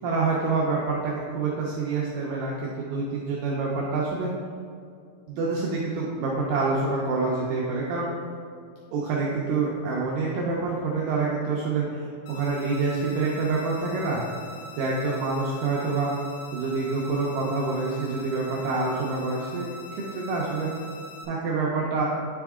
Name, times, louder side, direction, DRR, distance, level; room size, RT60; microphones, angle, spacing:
voice 1, 0.0-4.3 5.3-8.1 8.9-14.2 14.8-16.1 16.5-20.7 21.3-22.0, right 3 dB, 90° right, -4 dB, 1.8 m, -27 dB
sound 1, 12.3-21.3, equal, 85° left, 2.8 m, -43 dB
9.6 x 3.5 x 3.6 m, 2.3 s
omnidirectional pair, 4.6 m